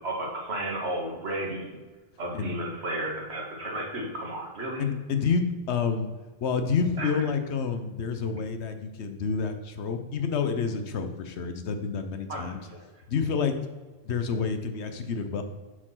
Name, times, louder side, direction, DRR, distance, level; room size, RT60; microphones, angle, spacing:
voice 1, 0.0-1.8 2.2-4.9 7.0-7.1 12.3-12.8, right 1 dB, 75° right, -1 dB, 2.0 m, -33 dB
voice 2, 4.8-6.1 6.4-12.6 13.1-13.5 14.0-15.4, left 5 dB, 85° left, 8 dB, 1.1 m, -28 dB
7.2 x 4.4 x 5.7 m, 1.3 s
omnidirectional pair, 1.1 m